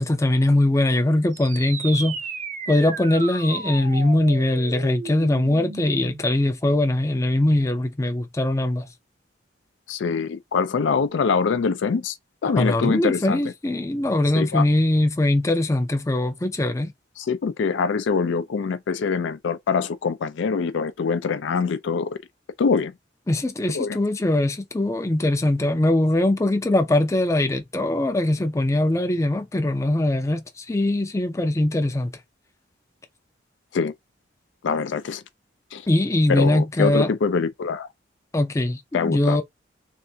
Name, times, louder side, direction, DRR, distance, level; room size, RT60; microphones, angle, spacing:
voice 1, 0.0-2.2 2.7-8.9 12.6-16.9 23.3-32.1 35.9-37.1 38.3-39.4, left 1 dB, 15° left, 0.4 m, -21 dB
Cartoon Falling Whistle, 1.3-6.3, right 4 dB, 40° right, 0.5 m, -35 dB
voice 2, 9.9-12.2 12.4-13.5 14.3-14.6 17.2-22.2 22.6-22.9 23.7-24.0 33.7-33.9 34.6-35.2 35.7-35.9 36.3-37.9 38.9-39.4, left 5 dB, 80° left, 0.4 m, -24 dB
3.3 x 2.5 x 2.7 m
head